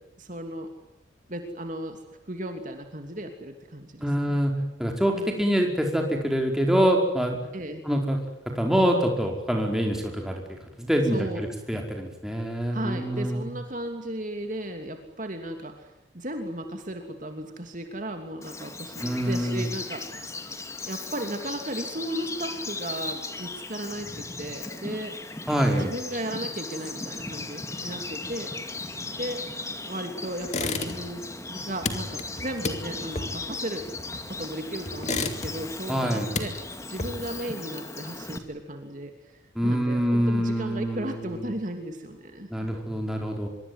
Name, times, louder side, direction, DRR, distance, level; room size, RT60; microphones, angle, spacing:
voice 1, 0.2-0.7 1.3-2.0 2.3-4.4 5.1-5.3 7.5-7.8 11.1-11.4 12.7-15.9 16.1-20.1 20.8-25.2 25.7-28.5 29.2-29.4 29.8-33.9 34.3-36.5 36.9-42.7, right 1 dB, 40° right, 5 dB, 2.9 m, -35 dB
voice 2, 4.0-7.4 7.8-8.2 8.5-10.4 10.8-13.5 19.0-19.6 25.5-25.9 35.9-36.3 39.5-41.4 42.5-43.5, equal, ahead, 1 dB, 5.0 m, -25 dB
Bird vocalization bird call bird song, 18.4-38.4, left 3 dB, 15° left, 2.3 m, -37 dB
sound 1, 30.4-31.2 31.5-34.4 34.8-35.8 36.1-37.4, left 3 dB, 35° left, 2.7 m, -32 dB
25.5 x 23.5 x 9.7 m, 0.85 s
head